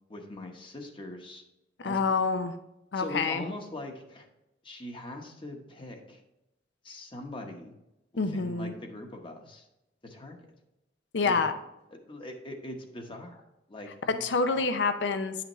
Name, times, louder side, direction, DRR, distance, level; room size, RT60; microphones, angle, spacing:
voice 1, 0.1-1.4 1.8-2.1 2.9-4.3 4.6-6.2 6.8-7.8 8.1-9.7 10.0-10.4 11.2-11.4 12.1-13.4 13.7-14.2 14.5-14.7, left 1 dB, 30° left, 3 dB, 1.0 m, -42 dB
voice 2, 1.8-2.6 2.9-3.4 8.2-8.7 11.1-11.5 14.1-15.4, left 4 dB, 75° left, 9 dB, 0.6 m, -27 dB
9.6 x 5.8 x 3.0 m, 0.92 s
head